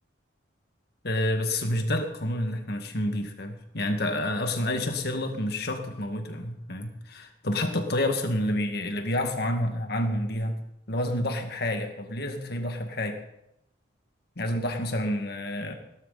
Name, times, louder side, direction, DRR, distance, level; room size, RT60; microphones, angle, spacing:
voice 1, 1.0-10.6 10.9-13.2 14.4-15.7, left 1 dB, 55° left, 5 dB, 1.9 m, -29 dB
17.0 x 12.5 x 4.1 m, 0.81 s
head